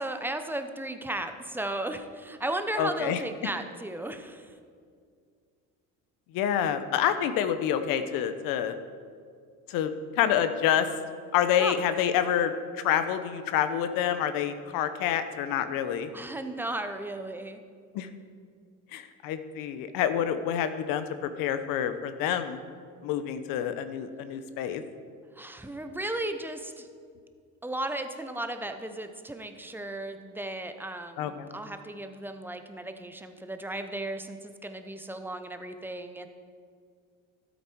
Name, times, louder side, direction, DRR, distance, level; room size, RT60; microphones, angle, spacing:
voice 1, 0.0-4.5 11.6-11.7 16.1-17.6 25.4-26.9 27.6-36.3, right 1 dB, 5° right, 8 dB, 0.7 m, -35 dB
voice 2, 2.8-3.2 6.3-8.7 9.7-10.9 11.3-16.1 17.9-18.1 18.9-22.6 23.0-24.8 31.2-31.5, left 9 dB, 70° left, 10 dB, 0.9 m, -27 dB
12.5 x 8.3 x 4.6 m, 2.2 s
cardioid pair, 110°, 35 cm